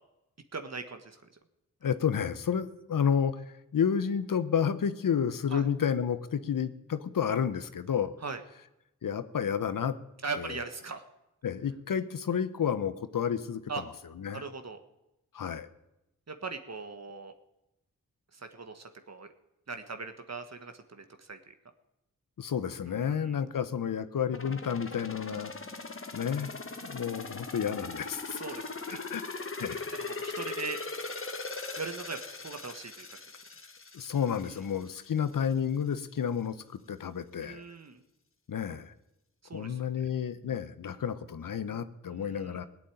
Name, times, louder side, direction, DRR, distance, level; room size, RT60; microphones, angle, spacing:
voice 1, 0.5-1.4 5.5-5.7 8.2-8.4 10.2-11.0 13.7-13.8 14.3-14.8 16.3-17.3 18.3-19.3 19.7-21.4 22.9-23.3 28.3-29.0 30.0-30.8 31.8-33.1 34.4-34.6 37.4-38.0 39.4-39.8 42.1-42.6, right 4 dB, 50° right, 7 dB, 1.7 m, -40 dB
voice 2, 1.8-8.2 9.0-10.0 10.4-10.5 11.4-13.6 14.2-14.4 15.3-15.7 22.4-25.5 26.1-26.5 26.8-28.4 29.1-29.3 29.6-29.8 33.9-37.6 38.5-38.9 39.5-42.7, left 7 dB, 70° left, 12 dB, 1.0 m, -31 dB
sound 1, 24.3-35.1 35.5-35.6, left 3 dB, 40° left, 1.6 m, -40 dB
17.5 x 8.4 x 9.3 m, 0.90 s
cardioid pair, 45°, 33 cm